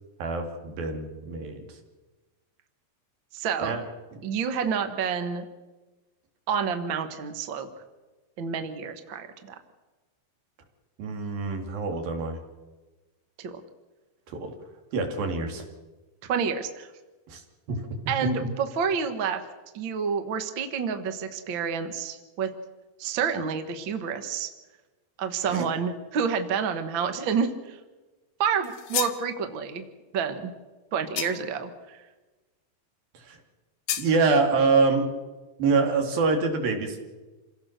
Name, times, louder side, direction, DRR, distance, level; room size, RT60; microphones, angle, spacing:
voice 1, 0.2-1.8 3.6-3.8 4.1-4.2 11.0-12.4 14.3-14.5 14.9-15.6 17.3-17.4 17.7-17.8 25.5-25.7 33.1-33.4 34.0-35.1 35.6-37.0, right 4 dB, 75° right, 4 dB, 4.3 m, -25 dB
voice 2, 3.3-3.8 4.2-5.4 6.5-7.7 8.4-9.5 13.4-13.6 16.2-16.9 18.1-19.4 19.7-22.5 23.0-24.5 25.2-27.8 28.4-29.8 30.1-30.5 30.9-32.0, right 6 dB, 50° right, 7 dB, 1.5 m, -29 dB
sound 1, 28.6-29.3 31.2-31.6 33.9-34.1, left 11 dB, 70° left, 2.7 m, -31 dB
28.0 x 17.0 x 6.6 m, 1.2 s
omnidirectional pair, 4.3 m